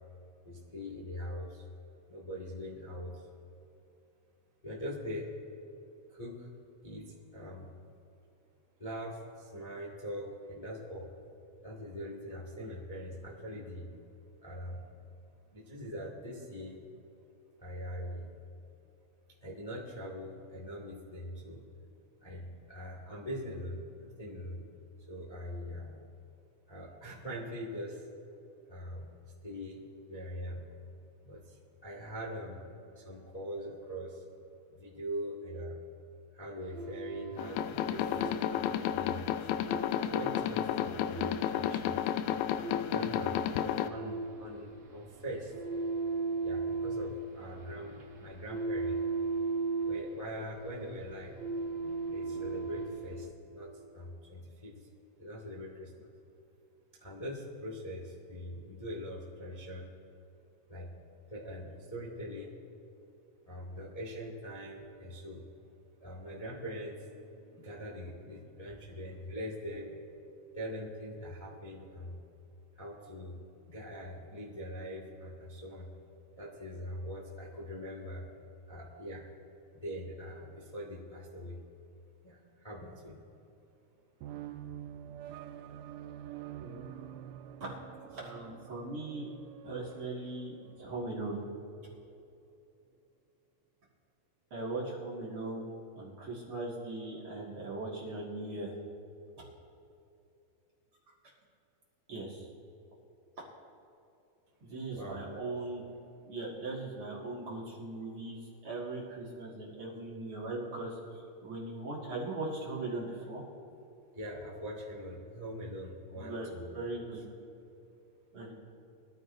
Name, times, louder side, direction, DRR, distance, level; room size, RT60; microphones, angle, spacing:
voice 1, 0.4-1.6 2.1-3.3 4.6-5.3 6.1-6.5 6.8-7.7 8.8-11.1 11.6-13.9 14.4-14.9 15.5-16.8 17.6-18.3 19.4-21.6 22.2-24.6 25.1-26.0 26.7-28.1 28.7-29.1 29.4-30.6 31.2-32.7 32.9-34.2 34.7-35.8 36.3-39.6 40.1-42.0 42.8-45.5 46.4-49.1 49.8-51.3 52.1-54.9 55.2-56.1 57.0-59.9 60.7-60.9 61.3-62.6 63.4-65.4 66.0-70.0 70.5-72.1 72.7-73.4 73.7-75.9 76.3-78.2 78.7-79.3 79.7-81.6 82.2-83.2 104.9-105.5 114.1-116.7, equal, 20° left, -4 dB, 1.0 m, -42 dB
sound 1, 36.6-53.3, right 3 dB, 60° right, 1.6 m, -38 dB
sound 2, 37.4-43.9, left 10 dB, 80° left, 2.2 m, -32 dB
sound 3, 84.2-91.5, right 10 dB, 80° right, 1.9 m, -47 dB
voice 2, 88.1-89.3 89.6-91.4 94.5-98.8 99.4-99.5 102.1-102.5 104.6-105.8 106.2-113.5 116.1-117.2 118.3-118.5, right 2 dB, 45° right, -5 dB, 2.3 m, -39 dB
23.0 x 13.5 x 2.6 m, 2.8 s
omnidirectional pair, 4.3 m